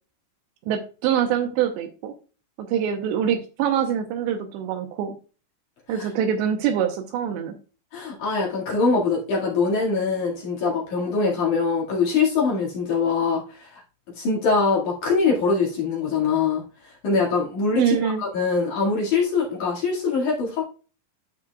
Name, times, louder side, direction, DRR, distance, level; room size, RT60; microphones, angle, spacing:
voice 1, 0.7-2.1 2.6-5.1 5.9-7.6 17.8-18.2, right 8 dB, 80° right, 6 dB, 2.8 m, -24 dB
voice 2, 7.9-13.8 14.2-16.6 17.0-20.6, left 4 dB, 50° left, -4 dB, 2.8 m, -23 dB
12.0 x 5.6 x 2.3 m, 0.35 s
omnidirectional pair, 5.5 m